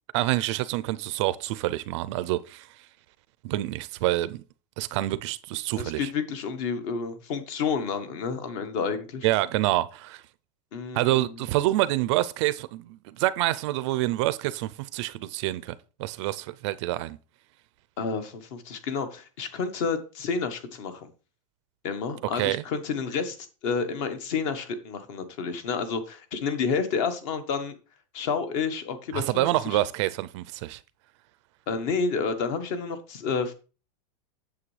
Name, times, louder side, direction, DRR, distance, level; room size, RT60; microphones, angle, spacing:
voice 1, 0.1-2.7 3.4-4.4 4.8-6.1 9.2-10.2 10.9-15.7 16.0-17.2 22.3-22.6 29.1-30.8, right 16 dB, 45° right, 0.4 m, -27 dB
voice 2, 5.8-9.3 10.7-11.4 18.0-21.1 21.8-23.4 23.6-27.7 28.1-29.8 31.7-33.5, left 5 dB, 50° left, 1.3 m, -30 dB
8.5 x 7.2 x 3.2 m
supercardioid pair, 160°, 21 cm